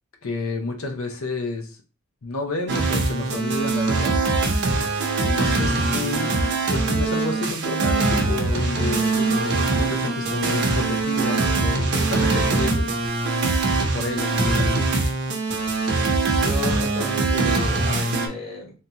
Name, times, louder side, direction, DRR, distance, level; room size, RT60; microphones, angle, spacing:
voice 1, 0.2-1.8 2.2-4.2 5.2-6.3 6.7-13.0 13.8-14.7, left 2 dB, 75° left, 0.7 m, -30 dB
sound 1, 2.7-18.3, right 3 dB, 55° right, 0.7 m, -22 dB
voice 2, 16.4-18.7, left 1 dB, 30° left, 1.0 m, -32 dB
3.4 x 2.8 x 2.7 m
head